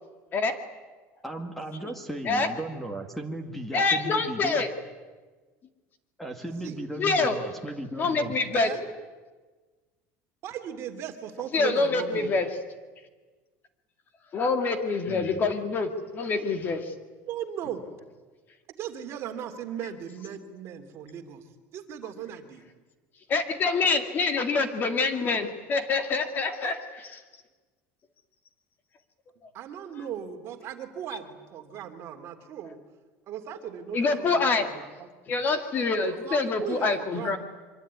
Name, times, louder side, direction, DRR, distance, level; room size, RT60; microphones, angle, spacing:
voice 1, 1.2-4.6 6.2-8.3 15.1-15.5, right 1 dB, 5° left, 6 dB, 2.1 m, -36 dB
voice 2, 3.7-4.7 7.0-7.4 8.0-8.7 11.5-12.5 14.3-16.9 23.3-27.2 33.9-34.7 35.3-37.4, left 4 dB, 30° left, 8 dB, 2.3 m, -26 dB
voice 3, 10.4-12.3 17.2-17.8 18.8-21.4 21.7-22.7 26.6-26.7 29.5-32.8 33.3-34.4 34.7-35.1 36.0-37.4, right 9 dB, 45° right, 6 dB, 2.8 m, -37 dB
24.5 x 24.0 x 9.6 m, 1.3 s
cardioid pair, 160°, 6 cm